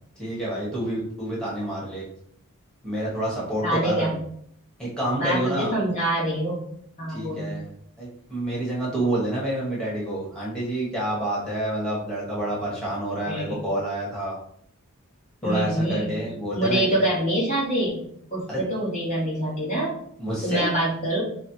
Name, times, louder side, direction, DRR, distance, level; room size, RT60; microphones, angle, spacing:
voice 1, 0.2-2.1 2.8-4.2 4.8-5.7 7.1-7.7 8.0-14.4 15.4-16.9 18.5-18.6 20.2-20.7, right 1 dB, 5° left, -7 dB, 1.5 m, -28 dB
voice 2, 3.6-4.1 5.2-6.6 7.0-7.5 13.2-13.6 15.4-16.2 16.5-18.0 18.3-20.0 20.4-21.2, right 1 dB, 35° left, -6 dB, 1.4 m, -25 dB
4.1 x 2.3 x 4.6 m, 0.68 s
head